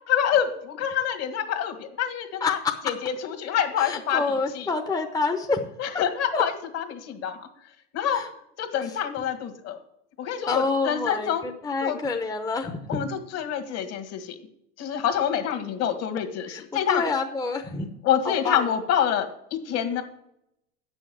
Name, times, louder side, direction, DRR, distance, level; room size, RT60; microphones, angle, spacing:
voice 1, 0.1-2.6 2.8-4.7 5.8-7.5 7.9-8.2 8.6-9.8 10.2-11.5 11.8-12.0 12.9-14.4 14.8-17.0 18.0-20.0, left 9 dB, 45° left, 7 dB, 1.7 m, -27 dB
voice 2, 2.4-2.9 3.8-5.6 6.3-6.4 8.1-8.3 8.9-9.0 10.5-13.0 16.5-16.6 16.9-17.9 18.2-18.7, left 4 dB, 10° left, 4 dB, 0.9 m, -27 dB
8.7 x 6.3 x 7.5 m, 0.78 s
hypercardioid pair, 105°, 35 cm